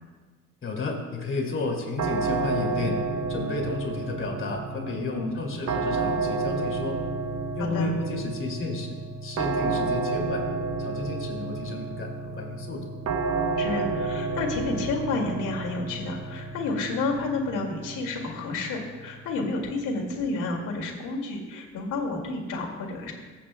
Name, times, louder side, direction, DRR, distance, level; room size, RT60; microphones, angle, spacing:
voice 1, 0.6-3.0 3.3-7.0 7.5-10.5 10.8-12.9, left 3 dB, 40° left, 0 dB, 2.4 m, -32 dB
sound 1, 2.0-20.9, right 4 dB, 55° right, 0.9 m, -31 dB
voice 2, 7.6-7.9 13.6-23.1, left 3 dB, 85° left, 0 dB, 2.2 m, -30 dB
23.0 x 8.4 x 2.2 m, 1.4 s
cardioid pair, 90°, 30 cm